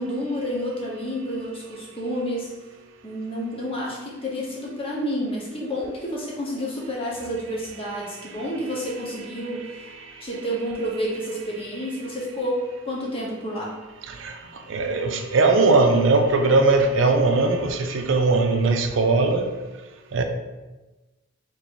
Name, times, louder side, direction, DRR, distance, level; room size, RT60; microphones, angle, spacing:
voice 1, 0.0-2.5 3.0-9.7 10.2-12.6 12.8-13.7, equal, 25° left, -4 dB, 0.8 m, -29 dB
voice 2, 14.7-19.5 20.1-20.2, right 3 dB, 70° right, 5 dB, 0.4 m, -19 dB
3.0 x 2.6 x 4.4 m, 1.1 s
head